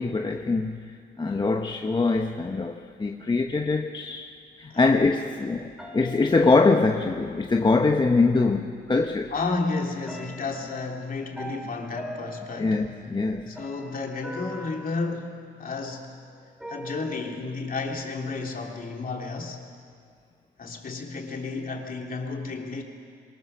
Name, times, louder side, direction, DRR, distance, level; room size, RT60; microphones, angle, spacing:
voice 1, 0.0-4.3 4.6-9.3 12.6-13.5, left 3 dB, 25° left, 4 dB, 1.0 m, -23 dB
sound 1, 5.8-7.3 8.4-8.5 9.0-9.6 10.1-16.0 16.6-17.4, right 1 dB, ahead, 2.8 m, -42 dB
voice 2, 9.3-12.8 13.5-16.2 16.7-19.6 20.6-22.8, left 3 dB, 45° left, 1 dB, 3.0 m, -32 dB
23.0 x 20.5 x 6.8 m, 2.2 s
cardioid pair, 90°, 20 cm